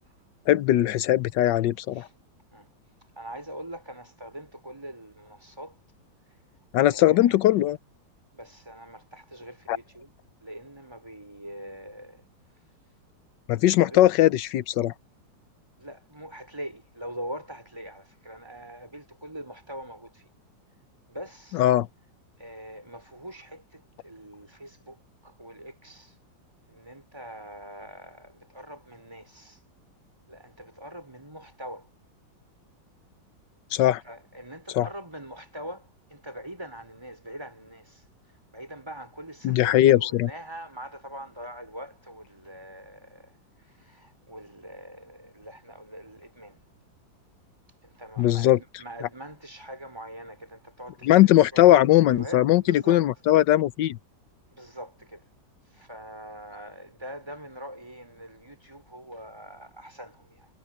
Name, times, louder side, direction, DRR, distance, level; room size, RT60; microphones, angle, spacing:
voice 1, 0.5-2.1 6.7-7.8 9.7-9.8 13.5-14.9 21.5-21.9 33.7-34.0 34.7-34.9 39.4-40.3 48.2-48.6 49.0-49.1 51.0-54.0, left 13 dB, 75° left, 1.3 m, -20 dB
voice 2, 3.2-5.8 6.9-7.4 8.3-10.1 10.4-12.2 13.8-14.0 15.8-20.3 21.1-21.6 22.4-26.1 26.7-29.6 30.3-31.9 34.0-38.0 38.5-43.4 43.7-46.6 47.8-53.0 54.6-55.2 55.7-60.5, equal, 10° right, 5.6 m, -43 dB
omnidirectional pair, 2.1 m